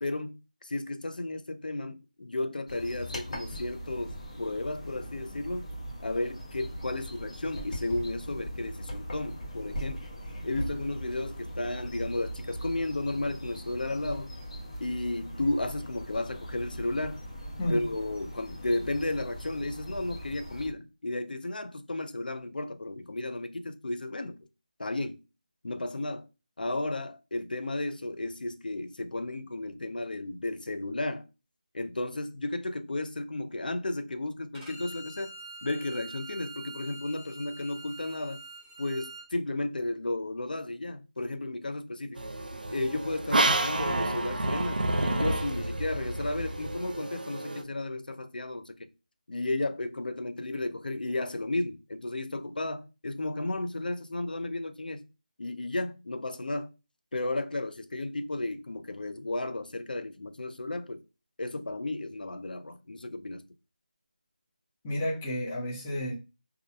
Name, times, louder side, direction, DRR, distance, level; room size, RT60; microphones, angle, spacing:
voice 1, 0.0-5.7 6.0-10.1 10.4-14.3 14.8-17.3 17.7-24.4 24.8-25.2 25.6-26.3 26.6-31.3 31.7-35.3 35.6-38.4 38.8-42.2 42.7-48.9 49.3-55.1 55.4-56.7 57.1-61.0 61.4-63.4, left 2 dB, 80° left, 0.4 m, -33 dB
sound 1, 2.7-20.7, equal, 50° left, 1.0 m, -40 dB
Bowed string instrument, 34.5-39.3, right 3 dB, 10° right, 0.7 m, -45 dB
sound 2, 42.2-47.6, right 2 dB, 85° right, 0.5 m, -29 dB
voice 2, 64.8-66.1, left 1 dB, 10° left, 0.3 m, -31 dB
2.4 x 2.0 x 2.6 m
figure-of-eight pair, 170°, 5 cm